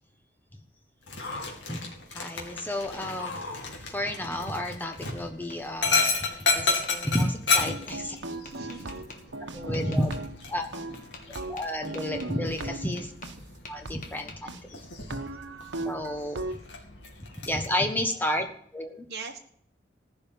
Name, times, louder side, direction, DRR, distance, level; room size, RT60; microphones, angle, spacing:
Dog, 1.0-17.7, left 4 dB, 85° left, 2.7 m, -33 dB
voice 1, 2.1-6.1 6.5-8.2 9.5-10.1 10.5-10.7 11.5-13.1 13.7-14.8 15.1-15.2 15.8-16.5 17.4-18.5 18.7-19.1, left 1 dB, 10° left, 4 dB, 1.2 m, -31 dB
Tap, 4.5-5.0 5.5-6.1 6.8-6.9 7.7-8.0 8.4-9.2 9.7-10.2 10.9-11.3 11.6-13.4 13.6-14.4, left 3 dB, 45° left, 1.7 m, -46 dB
sound 1, 7.6-10.4 10.7-13.3 13.8-13.9 14.5-14.6 15.0-16.6, right 2 dB, 85° right, 1.1 m, -37 dB
voice 2, 8.4-9.3 10.7-10.8 13.3-13.4 18.3-18.5 19.1-19.4, right 4 dB, 55° right, 1 dB, 1.4 m, -42 dB
15.0 x 5.6 x 8.8 m, 0.65 s
head